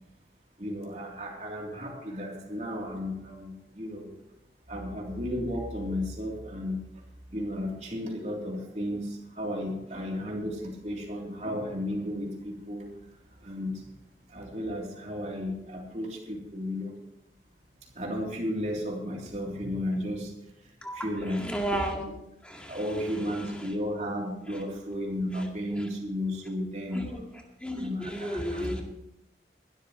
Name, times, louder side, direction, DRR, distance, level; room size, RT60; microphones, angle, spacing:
voice 1, 0.6-4.1 4.7-6.8 7.3-9.1 9.4-12.9 13.4-13.7 14.3-16.9 18.0-20.3 20.9-21.4 22.7-27.0 27.8-28.7, left 1 dB, 40° right, -2 dB, 3.5 m, -33 dB
voice 2, 20.8-22.0 22.4-23.7 24.5-24.6 25.3-25.5 25.8-25.9 26.9-27.2 27.6-28.8, right 1 dB, 5° left, 0 dB, 2.1 m, -34 dB
21.0 x 13.0 x 3.2 m, 0.86 s
head